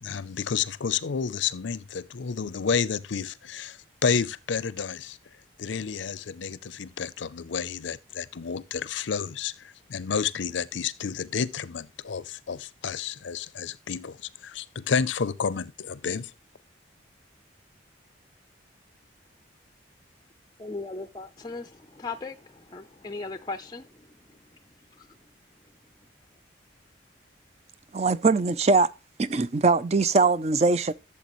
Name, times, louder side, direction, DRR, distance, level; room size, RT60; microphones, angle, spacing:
voice 1, 0.0-5.2 5.6-16.3, left 6 dB, 70° left, 0.5 m, -30 dB
voice 2, 20.6-24.1 25.0-25.1, left 3 dB, 20° left, 0.4 m, -38 dB
voice 3, 27.9-28.9 29.2-30.9, right 3 dB, 35° right, 0.4 m, -21 dB
12.0 x 7.3 x 3.0 m
head